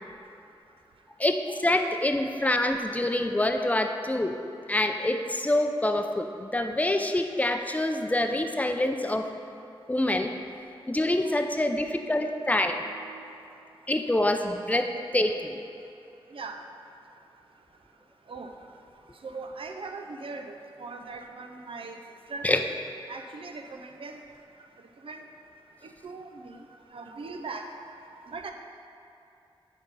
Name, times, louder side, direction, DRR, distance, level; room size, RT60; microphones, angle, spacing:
voice 1, 1.2-4.3 4.7-9.3 9.9-10.3 10.9-12.8 13.9-15.6 22.4-22.6, left 1 dB, 15° left, 6 dB, 0.6 m, -26 dB
voice 2, 11.2-13.4 16.3-16.6 18.3-18.5 19.2-22.0 22.3-22.5 23.1-24.2 25.0-25.2 25.8-26.6 26.9-28.5, right 3 dB, 70° right, 4 dB, 0.7 m, -41 dB
9.0 x 4.4 x 5.5 m, 2.7 s
wide cardioid pair, 70°, 10 cm